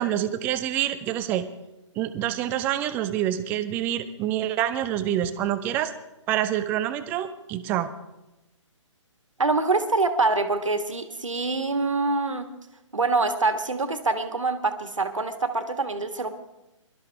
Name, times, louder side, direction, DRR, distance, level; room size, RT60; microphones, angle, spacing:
voice 1, 0.0-1.5 2.0-5.9 6.3-7.9, right 11 dB, 10° right, 11 dB, 0.5 m, -26 dB
voice 2, 9.4-12.5 12.9-16.3, right 3 dB, 70° right, 8 dB, 1.7 m, -25 dB
22.5 x 12.5 x 3.5 m, 0.97 s
figure-of-eight pair, 135°, 17 cm